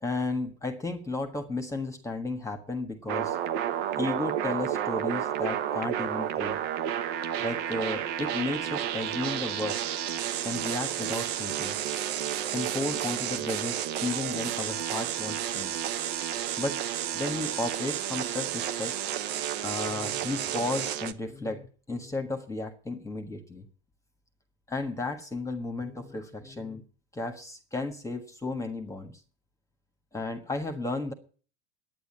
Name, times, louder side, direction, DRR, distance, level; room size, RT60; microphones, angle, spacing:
voice 1, 0.0-3.4 4.0-6.6 7.4-9.8 10.4-11.7 12.5-15.8 16.6-16.8 17.1-19.0 19.6-23.7 24.7-26.8 27.1-29.1 30.1-31.1, left 2 dB, 10° left, 5 dB, 1.5 m, -33 dB
sound 1, 3.1-21.1, right 10 dB, 60° right, 1.3 m, -31 dB
10.0 x 9.5 x 8.7 m, 0.40 s
supercardioid pair, 130°, 35 cm